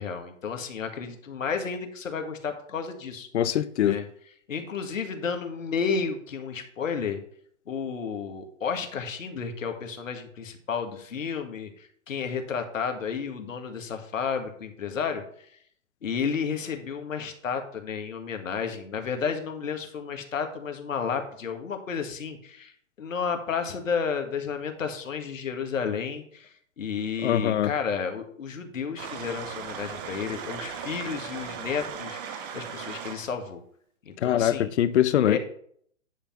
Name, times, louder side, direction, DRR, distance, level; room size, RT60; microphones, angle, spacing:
voice 1, 0.0-3.3 3.9-4.0 4.5-7.2 7.7-15.2 16.0-22.7 23.0-33.6 34.1-34.7 35.2-35.4, left 6 dB, 80° left, 1.8 m, -32 dB
voice 2, 3.3-4.0 27.2-27.7 34.2-35.4, left 11 dB, 60° left, 0.7 m, -23 dB
sound 1, 29.0-33.3, right 7 dB, 20° right, 0.5 m, -37 dB
10.0 x 3.5 x 5.8 m
hypercardioid pair, 135°, 39 cm